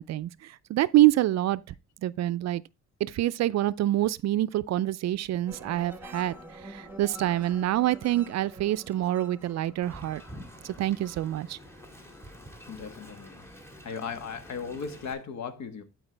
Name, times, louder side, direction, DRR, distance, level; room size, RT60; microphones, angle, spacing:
voice 1, 0.0-1.6 2.0-2.6 3.0-6.3 6.6-10.2 10.6-11.6, right 14 dB, 60° right, 0.4 m, -26 dB
sound 1, 5.5-14.3 14.7-15.2, equal, 5° right, 1.2 m, -49 dB
Wind, 9.8-15.1, equal, 10° left, 1.9 m, -48 dB
voice 2, 12.7-13.5 13.8-15.8, left 6 dB, 65° left, 1.4 m, -37 dB
12.0 x 4.6 x 3.3 m
cardioid pair, 90°, 30 cm